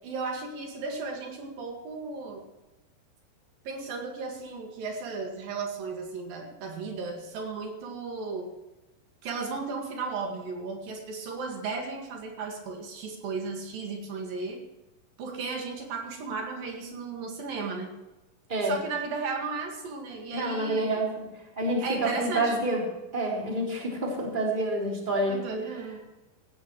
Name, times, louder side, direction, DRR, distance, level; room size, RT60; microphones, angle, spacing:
voice 1, 0.0-2.5 3.7-8.5 9.2-14.6 15.2-17.9 18.6-21.1 21.8-22.7 25.3-26.1, right 4 dB, 75° right, 2 dB, 3.7 m, -35 dB
voice 2, 20.3-21.3 21.6-22.8 23.1-25.5, right 1 dB, 15° right, -2 dB, 3.5 m, -28 dB
17.0 x 16.5 x 3.2 m, 1.0 s
omnidirectional pair, 4.1 m